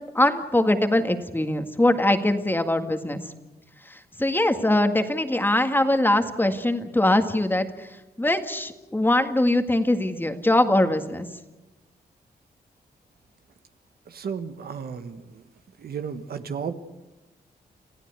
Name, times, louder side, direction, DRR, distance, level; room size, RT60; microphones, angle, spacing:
voice 1, 0.2-3.2 3.9-7.9 8.2-11.3, left 1 dB, 10° left, 7 dB, 1.9 m, -22 dB
voice 2, 14.1-15.4 15.8-16.7, right 6 dB, 70° right, 8 dB, 1.5 m, -33 dB
27.5 x 15.0 x 8.2 m, 1.1 s
cardioid pair, 90°, 17 cm